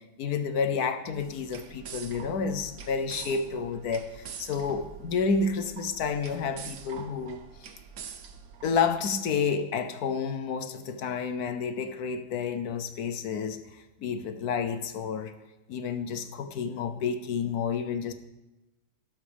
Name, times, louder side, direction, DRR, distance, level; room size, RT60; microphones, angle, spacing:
voice 1, 0.0-7.7 8.6-15.3 15.7-18.1, left 5 dB, 60° left, 8 dB, 1.0 m, -30 dB
sound 1, 1.1-9.2, right 6 dB, 70° right, 0.7 m, -45 dB
12.5 x 12.5 x 3.4 m, 1.0 s
omnidirectional pair, 2.2 m